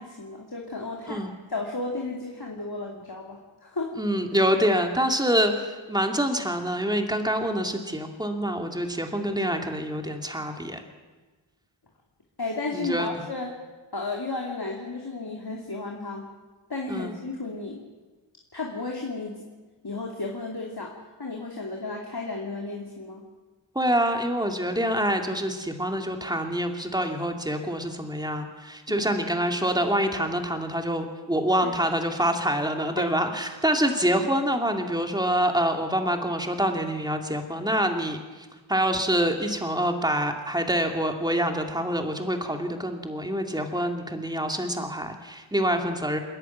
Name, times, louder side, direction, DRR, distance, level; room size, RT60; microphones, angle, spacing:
voice 1, 0.0-1.2 1.5-4.0 12.4-13.5 13.9-16.3 16.7-17.8 18.5-19.4 19.8-20.9 21.2-23.2 28.9-29.1 31.6-31.7 33.0-33.1, left 3 dB, 50° left, -1 dB, 2.8 m, -33 dB
voice 2, 4.0-10.8 12.7-13.2 16.9-17.1 23.7-46.2, equal, 10° right, 4 dB, 2.5 m, -26 dB
28.5 x 11.0 x 9.3 m, 1.3 s
wide cardioid pair, 70°, 47 cm